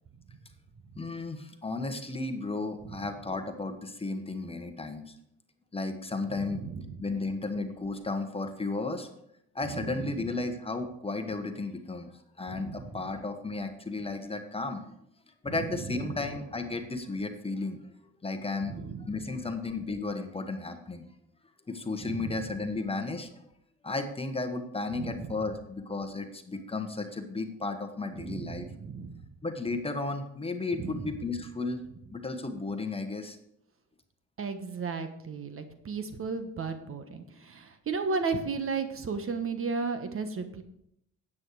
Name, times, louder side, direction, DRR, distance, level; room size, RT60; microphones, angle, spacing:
voice 1, 0.9-5.2 5.7-6.6 7.0-9.1 9.5-12.1 12.4-14.8 15.4-17.8 18.2-18.7 19.0-21.1 21.7-23.4 23.8-28.7 29.4-31.8 32.1-33.4, left 3 dB, 20° left, 6 dB, 1.4 m, -34 dB
voice 2, 6.3-7.0 9.7-10.1 12.5-13.0 15.5-16.0 18.6-19.2 22.0-22.4 24.9-25.3 28.2-29.2 30.7-31.1 34.4-40.6, right 4 dB, 45° right, 8 dB, 1.3 m, -35 dB
9.6 x 8.5 x 4.8 m, 0.74 s
cardioid pair, 90°, 30 cm